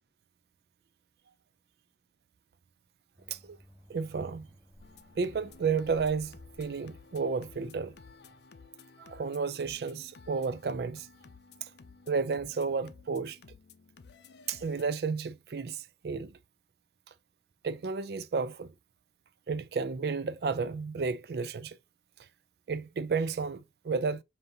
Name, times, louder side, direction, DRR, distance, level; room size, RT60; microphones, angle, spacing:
sound 1, 3.2-8.4, equal, 15° right, 1.6 m, -57 dB
voice 1, 3.9-4.5 5.2-7.9 9.0-11.1 11.6-11.7 12.1-13.4 14.5-16.3 17.6-18.7 19.5-21.8 22.7-24.2, right 5 dB, 60° right, 0.4 m, -32 dB
sound 2, 4.8-14.9, left 4 dB, 70° left, 0.5 m, -55 dB
5.2 x 2.8 x 2.6 m
head